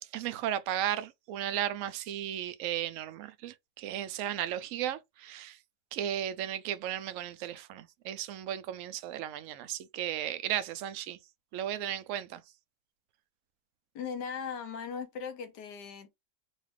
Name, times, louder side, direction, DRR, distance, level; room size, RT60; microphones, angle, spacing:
voice 1, 0.0-5.6 5.9-11.2 11.5-12.4, right 11 dB, 70° right, 0.7 m, -35 dB
voice 2, 13.9-16.1, left 6 dB, 75° left, 1.5 m, -38 dB
4.1 x 2.4 x 3.2 m
omnidirectional pair, 1.8 m